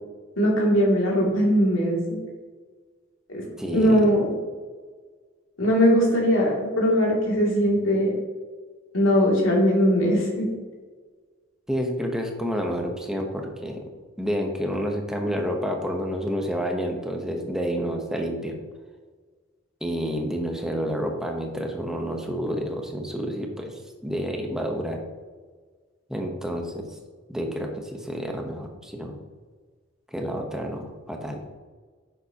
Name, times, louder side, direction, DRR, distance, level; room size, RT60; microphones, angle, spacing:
voice 1, 0.4-2.2 3.3-3.5 3.7-4.3 5.6-8.1 8.9-10.5, equal, 80° left, -3 dB, 2.5 m, -20 dB
voice 2, 3.6-4.2 11.7-13.9 14.2-18.6 19.8-25.0 26.1-27.0 27.3-29.2 30.1-31.4, equal, 5° right, 2 dB, 0.9 m, -29 dB
9.7 x 6.7 x 2.9 m, 1.5 s
head